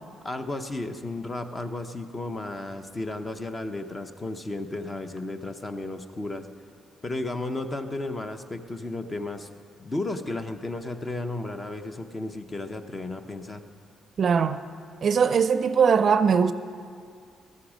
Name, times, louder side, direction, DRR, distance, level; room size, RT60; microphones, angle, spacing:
voice 1, 0.2-6.5 7.0-9.5 9.8-13.6, left 2 dB, 25° left, 0.7 m, -33 dB
voice 2, 14.2-14.6 15.0-16.5, right 6 dB, 50° right, 0.4 m, -20 dB
13.5 x 8.4 x 6.3 m
cardioid pair, 90°, 0 cm